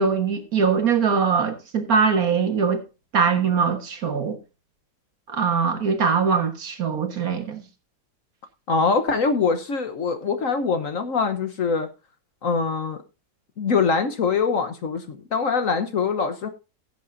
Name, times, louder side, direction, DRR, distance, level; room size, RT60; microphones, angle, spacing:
voice 1, 0.0-2.8 3.1-4.4 5.3-7.6, right 5 dB, 55° right, 1.8 m, -22 dB
voice 2, 8.7-11.9 12.4-13.0 13.6-16.5, left 5 dB, 55° left, 1.2 m, -23 dB
16.0 x 8.3 x 2.6 m
omnidirectional pair, 1.9 m